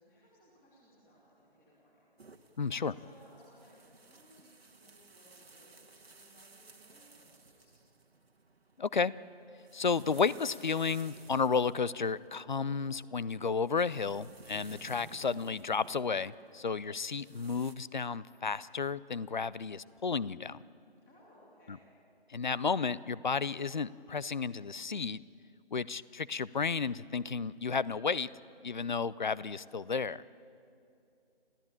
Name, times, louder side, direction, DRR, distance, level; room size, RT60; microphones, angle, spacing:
voice 1, 0.0-2.2 2.9-7.7 21.0-21.8, equal, 5° left, -6 dB, 2.8 m, -62 dB
sound 1, 2.2-17.7, right 3 dB, 75° right, 1.6 m, -57 dB
voice 2, 2.6-2.9 8.8-9.1 9.7-20.6 21.7-21.8 22.3-25.2 25.7-28.3 28.6-30.2, left 5 dB, 50° left, 19 dB, 0.5 m, -32 dB
27.5 x 15.0 x 8.7 m, 2.5 s
figure-of-eight pair, 160°, 31 cm